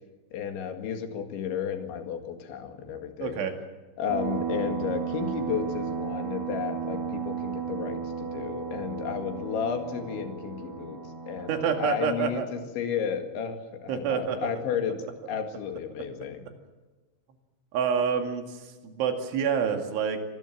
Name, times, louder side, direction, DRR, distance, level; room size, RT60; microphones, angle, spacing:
voice 1, 0.3-3.5 4.0-11.0 11.3-16.5, left 7 dB, 75° left, 6 dB, 4.3 m, -33 dB
voice 2, 3.2-3.5 11.5-12.5 13.9-14.5 17.7-20.2, right 7 dB, 80° right, 5 dB, 4.7 m, -27 dB
sound 1, 4.1-12.2, right 7 dB, 55° right, 8.7 m, -34 dB
25.0 x 19.5 x 7.4 m, 1.3 s
omnidirectional pair, 5.5 m